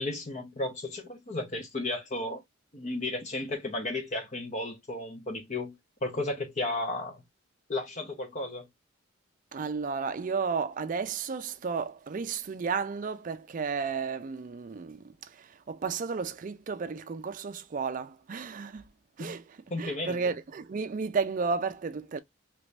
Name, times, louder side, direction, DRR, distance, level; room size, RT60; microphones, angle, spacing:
voice 1, 0.0-2.4 2.7-5.7 6.0-7.2 7.7-8.7 19.2-19.4 19.7-20.2, left 2 dB, 35° left, 0.6 m, -33 dB
voice 2, 9.5-18.9 19.2-22.2, right 5 dB, 40° right, 0.4 m, -33 dB
3.0 x 2.6 x 3.2 m
head